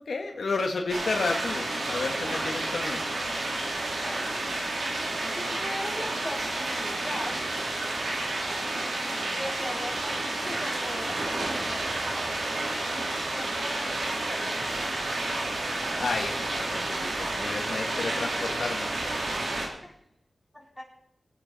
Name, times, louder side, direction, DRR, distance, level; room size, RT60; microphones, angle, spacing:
voice 1, 0.1-3.0 10.4-10.5 16.0-18.9, left 3 dB, 75° left, 3 dB, 1.6 m, -31 dB
sound 1, 0.9-19.7, right 2 dB, 75° right, 2.9 m, -30 dB
voice 2, 5.3-7.7 9.2-11.2 13.3-14.8 19.8-19.9 20.5-20.8, left 1 dB, 5° left, -2 dB, 4.0 m, -39 dB
20.0 x 8.9 x 4.2 m, 0.76 s
wide cardioid pair, 70°, 0 cm